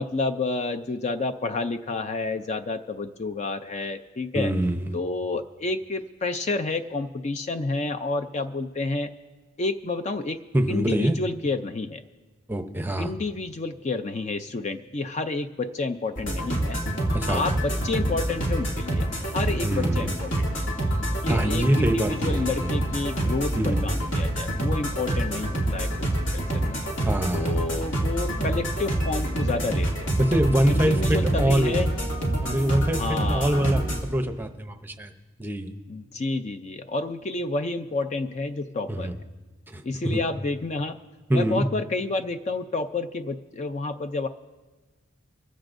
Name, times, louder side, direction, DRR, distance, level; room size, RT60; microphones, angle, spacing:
voice 1, 0.0-4.5 4.9-9.1 9.6-10.4 10.7-12.0 13.0-16.8 17.3-20.7 21.2-26.8 27.3-30.1 30.7-31.9 33.0-33.7 35.9-39.2 39.8-41.0 41.3-44.3, left 3 dB, 35° left, 9 dB, 0.4 m, -30 dB
voice 2, 4.3-4.8 10.5-11.2 12.5-13.1 17.1-17.4 19.6-20.1 21.3-22.7 23.6-23.8 27.0-27.6 30.2-31.8 32.4-33.8 34.1-35.1 35.4-35.7 38.9-39.1 39.7-40.2 41.3-41.7, right 1 dB, 10° right, 6 dB, 0.6 m, -25 dB
sound 1, 16.2-34.0, right 1 dB, 65° left, 2.5 m, -26 dB
23.5 x 15.0 x 2.6 m, 1.2 s
head